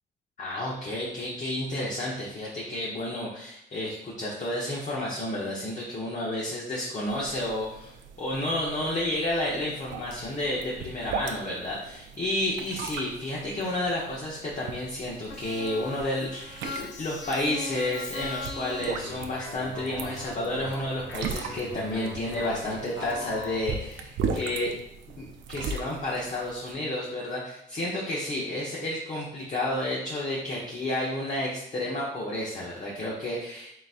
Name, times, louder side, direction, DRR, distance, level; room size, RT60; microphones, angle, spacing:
voice 1, 0.4-24.7 25.2-33.8, left 1 dB, 40° left, -4 dB, 0.9 m, -31 dB
sound 1, 7.1-26.7, right 5 dB, 75° right, 0.5 m, -39 dB
sound 2, 15.3-23.6, left 2 dB, 70° left, 0.8 m, -40 dB
3.9 x 3.9 x 2.5 m, 0.77 s
cardioid pair, 90°, 20 cm